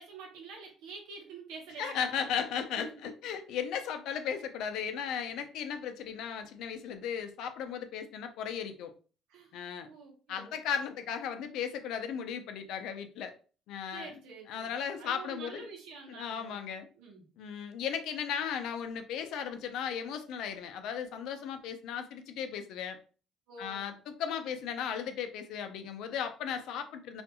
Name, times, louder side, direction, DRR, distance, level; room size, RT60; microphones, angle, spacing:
voice 1, 0.0-2.5 2.8-3.1 9.3-9.5 9.8-10.5 13.9-16.7 17.0-17.2 23.5-24.0, right 4 dB, 90° right, 1 dB, 0.8 m, -47 dB
voice 2, 1.8-8.9 9.5-9.9 10.3-13.3 13.7-14.1 14.5-15.6 16.1-16.9 17.4-23.0 23.6-27.2, left 8 dB, 75° left, 7 dB, 0.4 m, -36 dB
2.4 x 2.2 x 2.8 m, 0.38 s
cardioid pair, 115°, 0 cm